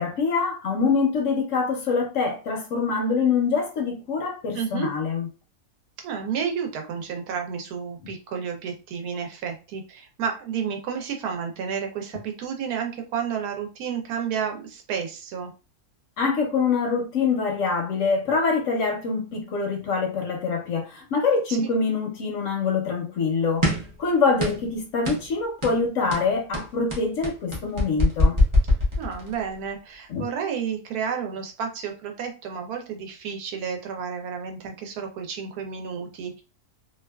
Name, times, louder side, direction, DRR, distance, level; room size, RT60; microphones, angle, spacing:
voice 1, 0.0-5.3 16.2-23.7 24.0-28.4 30.1-30.2, left 4 dB, 65° left, 0.8 m, -24 dB
voice 2, 4.5-4.9 6.0-15.5 21.5-21.7 29.0-36.4, right 7 dB, 80° right, 1.1 m, -31 dB
sound 1, 23.6-24.0 24.4-24.7 25.0-25.3 25.6-25.8 26.1-29.4, left 1 dB, 35° right, 0.5 m, -22 dB
2.7 x 2.3 x 2.2 m
omnidirectional pair, 1.6 m